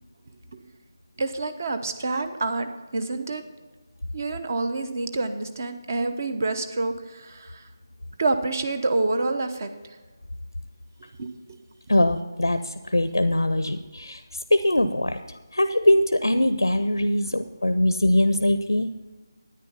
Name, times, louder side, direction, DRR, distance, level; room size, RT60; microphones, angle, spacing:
voice 1, 1.2-3.4 4.1-7.7 8.2-9.7 11.2-11.6, right 3 dB, 45° right, 9 dB, 1.0 m, -27 dB
voice 2, 11.9-18.9, left 1 dB, 85° left, 10 dB, 0.6 m, -22 dB
10.0 x 9.5 x 5.6 m, 1.3 s
figure-of-eight pair, 160°, 2 cm